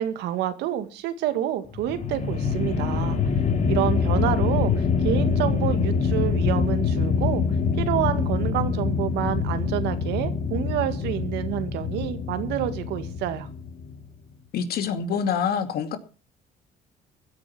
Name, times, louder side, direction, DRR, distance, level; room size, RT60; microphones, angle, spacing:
voice 1, 0.0-3.2 3.7-7.4 7.8-13.5, right 12 dB, 85° right, 2.1 m, -28 dB
sound 1, 1.7-14.0, left 5 dB, 45° left, 3.3 m, -25 dB
voice 2, 14.5-16.0, left 7 dB, 65° left, 2.6 m, -26 dB
15.5 x 10.0 x 6.1 m
cardioid pair, 110°, 17 cm